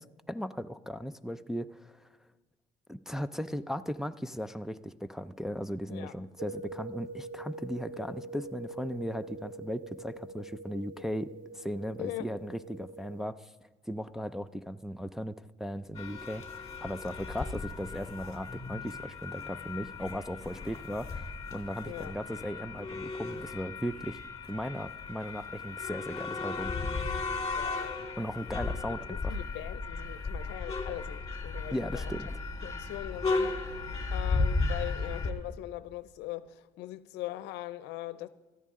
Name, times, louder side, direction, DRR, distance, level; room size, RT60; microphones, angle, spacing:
voice 1, 0.0-2.1 2.9-11.3 11.5-13.5 13.9-24.2 24.5-27.0 28.2-29.4 31.7-32.4, equal, 5° right, 0.4 m, -37 dB
sound 1, 6.4-13.3, right 3 dB, 55° right, 0.6 m, -44 dB
voice 2, 12.0-12.3 21.8-22.1 27.5-28.0 29.1-32.1 32.6-33.6 34.1-38.3, left 15 dB, 90° left, 0.6 m, -41 dB
sound 2, 15.9-35.3, left 3 dB, 20° left, 2.5 m, -35 dB
19.0 x 14.0 x 3.7 m
cardioid pair, 110°, 17 cm